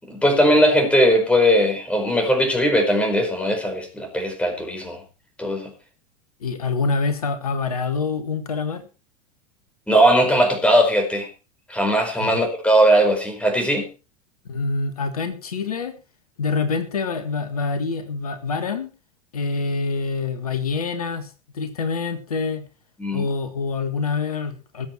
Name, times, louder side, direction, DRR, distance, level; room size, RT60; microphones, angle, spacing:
voice 1, 0.0-5.0 5.4-5.7 9.9-11.3 11.7-13.9 23.0-23.3, equal, 5° left, 5 dB, 4.8 m, -19 dB
voice 2, 6.4-8.8 12.2-12.3 14.5-15.9 16.4-18.9 19.3-22.6 23.1-24.9, left 4 dB, 70° left, 9 dB, 1.8 m, -26 dB
20.5 x 7.8 x 4.4 m, 0.32 s
figure-of-eight pair, 85°, 20 cm